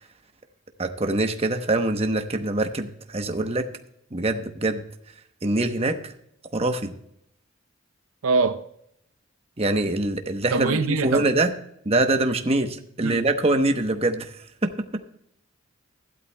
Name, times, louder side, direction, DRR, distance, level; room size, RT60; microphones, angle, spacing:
voice 1, 0.8-3.7 4.1-4.8 5.4-6.1 6.5-6.9 9.6-11.5 11.8-14.3 14.6-14.8, right 2 dB, 30° right, 0.9 m, -24 dB
voice 2, 8.2-8.6 10.5-11.3 13.0-13.3, right 4 dB, 85° right, 0.7 m, -23 dB
15.5 x 12.0 x 2.2 m
head